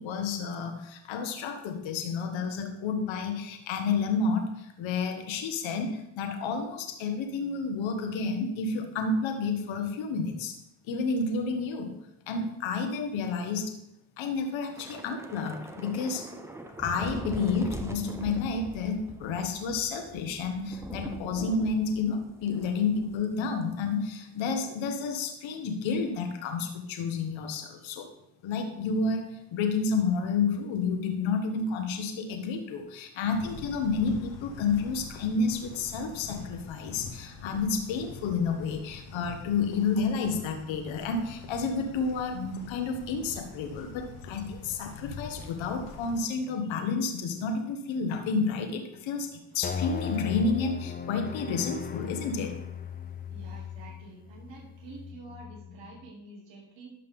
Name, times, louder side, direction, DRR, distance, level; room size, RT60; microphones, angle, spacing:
voice 1, 0.0-10.5 10.9-11.9 12.3-13.7 14.2-16.2 16.8-28.1 28.4-52.6, left 4 dB, 70° left, 5 dB, 1.5 m, -30 dB
Thunder / Rain, 14.7-23.3 23.6-23.8 24.1-24.4, right 1 dB, 5° right, 0.9 m, -42 dB
sound 1, 33.3-46.2, left 4 dB, 85° left, 1.4 m, -44 dB
sound 2, 49.6-56.1, left 7 dB, 20° left, 0.6 m, -37 dB
voice 2, 53.3-56.9, right 3 dB, 65° right, -3 dB, 3.0 m, -48 dB
12.5 x 5.6 x 3.7 m, 0.82 s
supercardioid pair, 85°, 48 cm